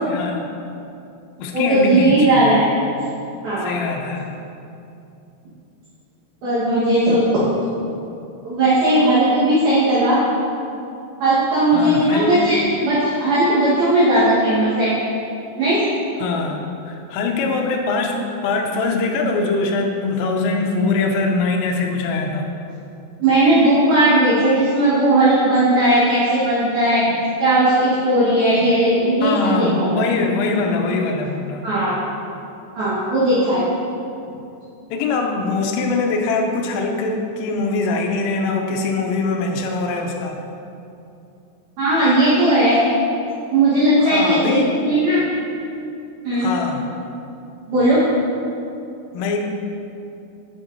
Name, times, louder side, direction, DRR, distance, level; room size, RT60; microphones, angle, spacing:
voice 1, 0.1-0.5 1.4-2.6 3.6-4.3 11.7-12.4 16.2-22.6 29.2-31.8 34.9-40.4 44.0-44.8 46.3-46.8 49.1-49.4, left 3 dB, 85° left, 2 dB, 3.2 m, -22 dB
voice 2, 1.5-2.7 3.4-3.8 6.4-7.2 8.4-10.2 11.2-14.9 15.6-15.8 23.2-27.0 27.4-29.8 31.6-32.0 32.8-33.6 41.8-42.8 43.5-45.2 46.2-46.5 47.7-48.0, right 1 dB, 65° right, -11 dB, 2.6 m, -17 dB
9.9 x 6.8 x 2.6 m, 2.7 s
omnidirectional pair, 5.7 m